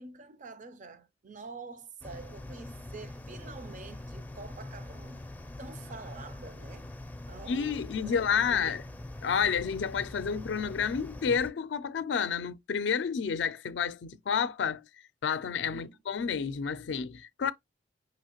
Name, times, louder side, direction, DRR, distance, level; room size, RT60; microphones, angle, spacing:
voice 1, 0.0-5.3 5.6-6.9 7.3-7.8 8.1-8.8 15.7-16.0 17.4-17.5, right 4 dB, 45° right, 0.5 m, -47 dB
sound 1, 2.0-11.5, left 1 dB, 10° left, 0.4 m, -44 dB
voice 2, 7.5-8.8 9.2-14.8 15.2-17.5, left 6 dB, 70° left, 0.4 m, -30 dB
5.5 x 2.9 x 2.9 m
head